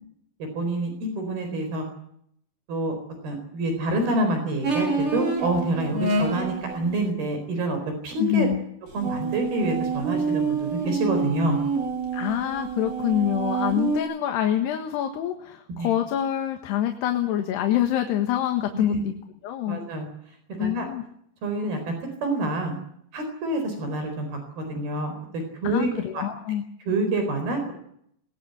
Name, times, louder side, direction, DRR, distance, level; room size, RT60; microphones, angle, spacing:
voice 1, 0.4-1.9 2.7-2.9 3.2-8.5 8.9-11.6 15.8-15.9 18.7-19.0 19.7-20.1 20.6-20.9 21.4-21.9 22.2-22.8 23.1-26.2 26.9-27.7, right 2 dB, 65° right, 6 dB, 6.2 m, -27 dB
sound 1, 4.6-6.9 9.0-14.0, right 4 dB, 35° right, 4.3 m, -27 dB
voice 2, 8.2-8.6 12.1-19.1 19.4-19.8 20.6-21.0 25.6-26.6, left 11 dB, 80° left, 5 dB, 3.7 m, -26 dB
21.5 x 20.0 x 8.2 m, 0.71 s
omnidirectional pair, 4.8 m